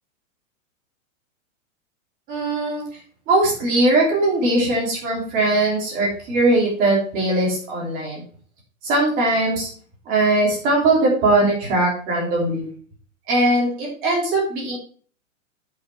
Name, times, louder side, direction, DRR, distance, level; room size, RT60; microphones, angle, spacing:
voice 1, 2.3-2.8 3.3-8.2 8.8-9.7 10.1-12.7 13.3-14.8, right 2 dB, 20° right, -2 dB, 3.1 m, -20 dB
9.2 x 5.9 x 4.5 m, 0.43 s
hypercardioid pair, 170°, 40 cm